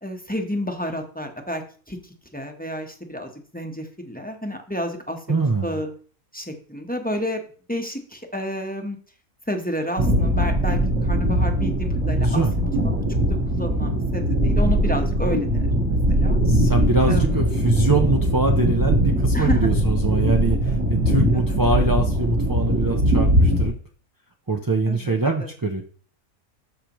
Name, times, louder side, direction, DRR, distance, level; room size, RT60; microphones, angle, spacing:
voice 1, 0.0-1.6 1.9-2.0 2.3-5.9 6.3-7.4 7.7-9.0 9.5-12.7 13.1-13.2 13.5-16.4 17.1-17.4 19.3-19.6 21.3-21.8 24.9-25.5, equal, 5° left, 3 dB, 0.9 m, -30 dB
voice 2, 5.3-5.8 12.2-12.5 16.4-23.7 24.5-25.8, right 3 dB, 30° right, 1 dB, 0.4 m, -23 dB
sound 1, 10.0-23.7, equal, 55° right, 2.1 m, -21 dB
13.0 x 5.0 x 3.1 m, 0.43 s
omnidirectional pair, 1.5 m